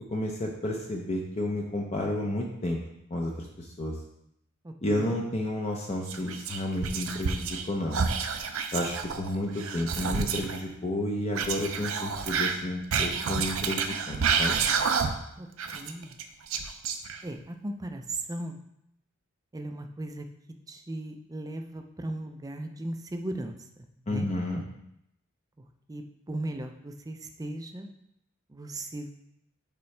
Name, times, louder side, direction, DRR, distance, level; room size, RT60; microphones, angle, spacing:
voice 1, 0.1-2.8 3.1-4.0 4.8-8.0 8.7-14.6 24.1-24.6, left 1 dB, 30° left, 0 dB, 0.6 m, -31 dB
voice 2, 4.6-5.1 15.4-15.5 15.7-16.2 17.2-18.6 19.5-20.3 20.7-23.5 24.1-24.3 25.9-27.9 28.5-29.1, right 1 dB, 15° right, 5 dB, 0.5 m, -37 dB
Whispering, 6.1-7.7 7.9-10.6 11.3-15.3 15.6-17.4, right 5 dB, 70° right, 0.6 m, -29 dB
6.8 x 4.7 x 3.2 m, 0.79 s
head